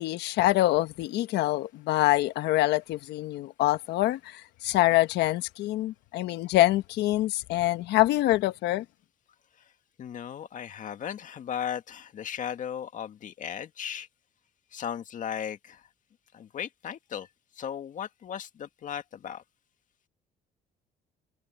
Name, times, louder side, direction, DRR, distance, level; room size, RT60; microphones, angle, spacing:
voice 1, 0.0-8.8, left 16 dB, 80° left, 1.3 m, -25 dB
voice 2, 10.0-14.1 14.7-15.9 16.3-17.3 17.5-19.4, left 9 dB, 50° left, 1.8 m, -36 dB
cardioid pair, 110°, 17 cm